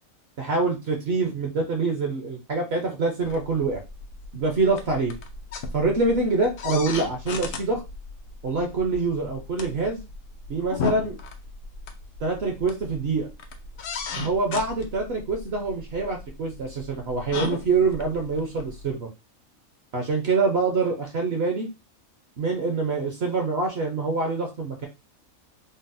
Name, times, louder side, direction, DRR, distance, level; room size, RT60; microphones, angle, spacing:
voice 1, 0.4-3.8 4.3-5.1 5.7-7.8 8.4-10.0 10.5-11.2 12.2-13.3 14.2-19.1 19.9-21.7 22.4-24.9, right 3 dB, 55° right, 2 dB, 0.8 m, -25 dB
sound 1, 3.2-18.9, left 5 dB, 70° left, 0.5 m, -37 dB
3.9 x 2.0 x 2.5 m, 0.26 s
omnidirectional pair, 1.5 m